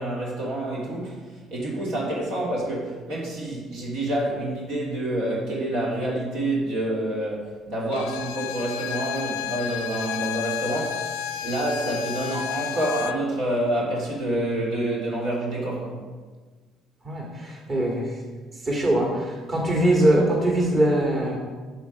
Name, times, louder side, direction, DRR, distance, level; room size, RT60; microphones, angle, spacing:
voice 1, 0.0-11.1 11.4-16.0, right 1 dB, 75° right, -4 dB, 2.9 m, -27 dB
Bowed string instrument, 7.9-13.2, left 10 dB, 85° left, 0.5 m, -32 dB
voice 2, 17.0-18.1 18.6-21.4, right 1 dB, 40° right, -2 dB, 2.7 m, -22 dB
8.0 x 7.4 x 5.6 m, 1.4 s
supercardioid pair, 70°, 0 cm